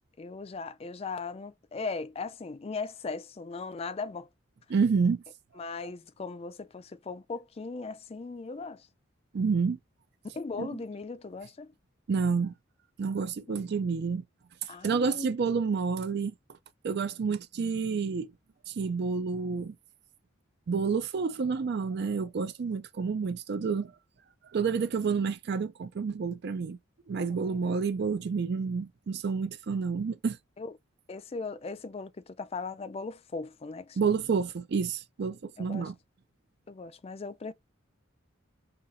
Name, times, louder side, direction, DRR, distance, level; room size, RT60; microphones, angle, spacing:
voice 1, 0.2-4.3 5.6-8.9 10.3-11.7 13.5-13.6 14.7-15.3 27.2-27.6 30.6-30.7 31.1-34.1 35.6-35.9 36.7-37.5, left 4 dB, 30° left, 0.4 m, -38 dB
voice 2, 4.7-5.2 9.3-9.8 10.6-10.7 12.1-12.5 13.0-14.2 14.6-16.3 16.8-18.3 18.7-19.7 20.7-23.9 24.5-26.8 27.1-30.4 34.0-35.9, right 5 dB, 55° right, 0.4 m, -29 dB
5.6 x 2.7 x 2.6 m
head